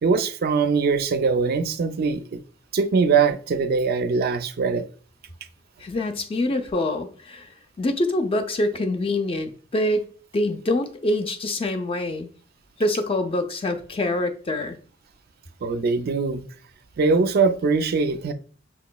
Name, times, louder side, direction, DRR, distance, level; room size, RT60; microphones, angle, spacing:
voice 1, 0.0-2.4 2.7-4.9 15.6-16.4 17.0-18.3, right 4 dB, 50° right, 0.4 m, -22 dB
voice 2, 5.8-7.5 7.8-10.1 10.3-12.3 12.8-14.8, left 1 dB, 30° left, 0.4 m, -25 dB
5.8 x 2.9 x 2.2 m
head